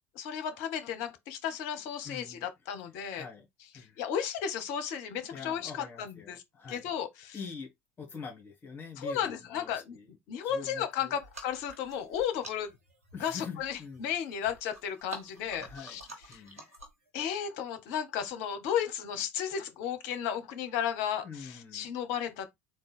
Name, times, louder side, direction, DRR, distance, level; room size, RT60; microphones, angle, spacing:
voice 1, 0.1-3.3 4.0-6.4 6.7-7.4 9.0-10.0 10.3-12.7 13.2-16.0 16.3-16.4 17.1-22.5, left 8 dB, 55° left, 0.8 m, -34 dB
voice 2, 2.0-2.5 3.1-3.5 3.7-4.0 5.3-7.0 7.3-7.7 8.0-10.1 10.4-11.2 13.1-14.1 15.6-16.0 16.3-16.6 21.2-21.9, left 5 dB, 25° left, 1.7 m, -45 dB
sound 1, 11.1-17.1, right 1 dB, 80° right, 1.2 m, -50 dB
3.7 x 2.5 x 4.1 m
figure-of-eight pair, 70°, 8 cm